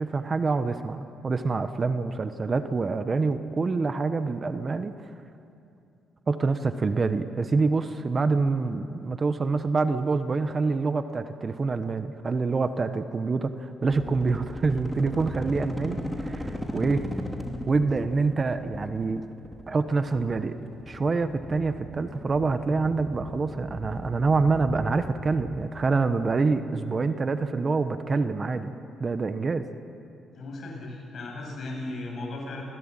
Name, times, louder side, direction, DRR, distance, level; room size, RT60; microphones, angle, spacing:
voice 1, 0.0-4.9 6.3-17.0 17.7-19.2 19.7-20.6 20.9-28.7 29.0-29.7, right 4 dB, 35° right, 10 dB, 1.1 m, -26 dB
sound 1, 13.9-25.7, equal, ahead, 2.6 m, -37 dB
voice 2, 30.3-32.6, left 2 dB, 55° left, -1 dB, 7.9 m, -36 dB
27.5 x 17.0 x 9.0 m, 2.7 s
cardioid pair, 90°, 0 cm